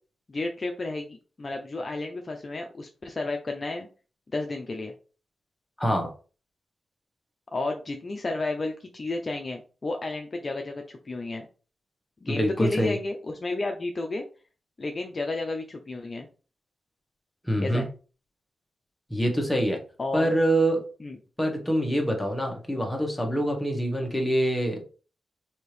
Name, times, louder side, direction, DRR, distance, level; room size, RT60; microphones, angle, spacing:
voice 1, 0.3-3.9 4.3-4.9 7.5-11.5 12.2-14.2 14.8-16.3 17.6-17.9 20.0-20.3 21.0-21.2, left 2 dB, 35° left, 0.5 m, -32 dB
voice 2, 5.8-6.1 12.3-12.9 17.4-17.8 19.1-19.8 20.1-20.9 21.4-24.8, right 1 dB, 10° left, 1.1 m, -25 dB
4.3 x 2.7 x 3.3 m
cardioid pair, 95°, 0 cm